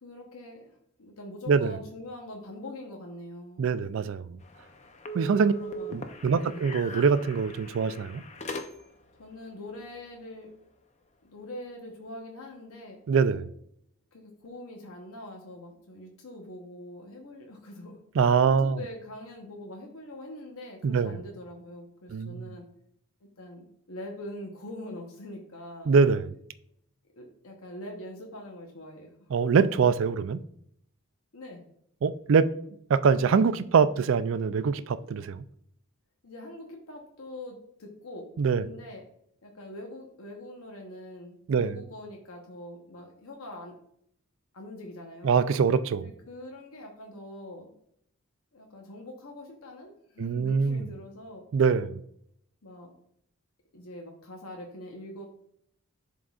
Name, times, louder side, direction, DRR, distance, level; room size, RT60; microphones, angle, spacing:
voice 1, 0.0-3.6 5.5-6.0 6.3-6.7 9.2-10.5 11.2-13.0 14.1-22.7 23.4-25.9 27.2-29.1 31.3-31.7 36.2-38.3 38.6-39.0 39.4-43.8 44.5-45.4 46.0-47.7 48.5-51.4 52.6-52.9 53.7-55.3, left 1 dB, 75° left, 1.0 m, -43 dB
voice 2, 3.6-4.4 5.1-5.5 5.9-8.2 13.1-13.5 18.2-18.8 20.8-21.1 22.1-22.5 25.9-26.3 29.3-30.4 32.0-32.5 32.9-35.4 38.4-38.6 41.5-41.7 45.2-46.1 50.2-50.8 51.5-52.0, right 5 dB, 60° right, 0.3 m, -24 dB
sound 1, 4.4-9.1, equal, 30° left, 0.5 m, -40 dB
11.0 x 3.8 x 2.4 m
head